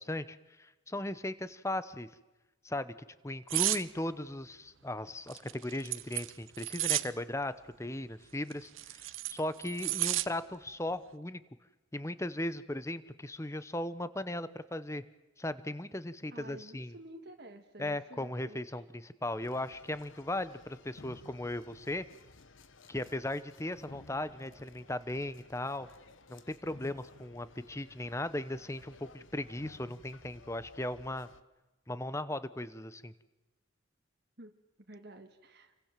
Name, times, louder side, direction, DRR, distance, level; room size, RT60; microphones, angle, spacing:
voice 1, 0.0-2.1 2.6-2.9 3.2-11.4 11.9-15.0 15.4-16.9 17.8-22.1 22.9-25.9 26.3-31.3 31.9-33.1, left 1 dB, 15° left, 14 dB, 0.9 m, -37 dB
sound 1, 3.5-3.8 5.3-7.1 8.5-10.3 10.7-10.9, right 16 dB, 75° right, 0.9 m, -32 dB
voice 2, 16.3-18.8 34.4-34.6 34.9-35.7, right 1 dB, 50° right, 4 dB, 1.8 m, -51 dB
sound 2, 19.4-31.4, left 3 dB, 70° left, 1.2 m, -56 dB
29.5 x 24.0 x 7.5 m, 1.1 s
head